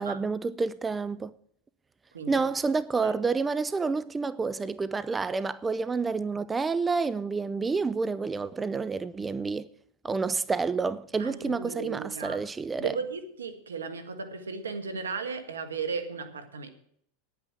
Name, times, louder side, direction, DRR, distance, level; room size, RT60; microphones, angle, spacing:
voice 1, 0.0-1.3 2.3-9.7 10.0-13.0, right 4 dB, 15° right, 0.5 m, -29 dB
voice 2, 11.2-12.4 12.8-16.7, right 5 dB, 90° right, 1.5 m, -35 dB
10.0 x 8.8 x 7.5 m
hypercardioid pair, 95°, 0 cm